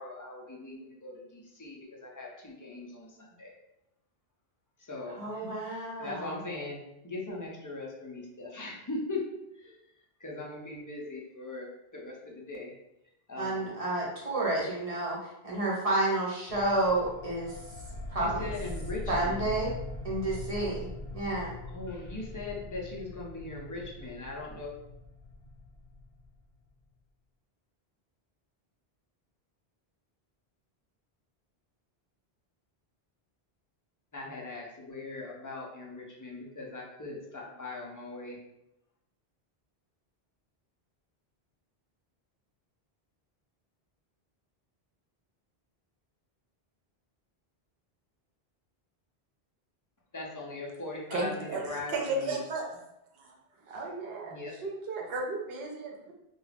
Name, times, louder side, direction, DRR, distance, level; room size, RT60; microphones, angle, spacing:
voice 1, 0.0-3.5 4.8-6.8 7.0-9.8 10.2-12.7 13.3-13.7 18.2-19.5 21.7-24.8 34.1-38.4 50.1-52.4 54.2-54.6, left 2 dB, 30° left, -3 dB, 0.4 m, -40 dB
voice 2, 5.2-6.4 13.4-17.5 18.1-18.5 19.1-19.7 20.0-20.9 21.1-21.5, right 2 dB, 40° right, -5 dB, 0.7 m, -30 dB
sound 1, 16.5-26.7, left 2 dB, 70° left, 0.8 m, -42 dB
voice 3, 51.1-52.7 53.1-53.4 53.7-56.1, right 3 dB, 75° right, 0 dB, 0.8 m, -34 dB
2.3 x 2.2 x 3.3 m, 0.85 s
omnidirectional pair, 1.0 m